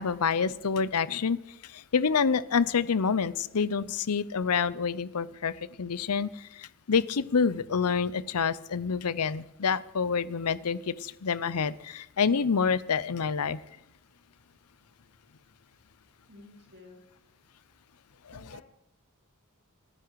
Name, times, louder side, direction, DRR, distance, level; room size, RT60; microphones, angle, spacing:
voice 1, 0.0-13.6, left 6 dB, 90° left, 19 dB, 0.7 m, -28 dB
voice 2, 16.3-17.0 18.3-18.6, left 1 dB, 50° right, 1 dB, 3.4 m, -51 dB
27.5 x 9.9 x 4.7 m, 0.82 s
head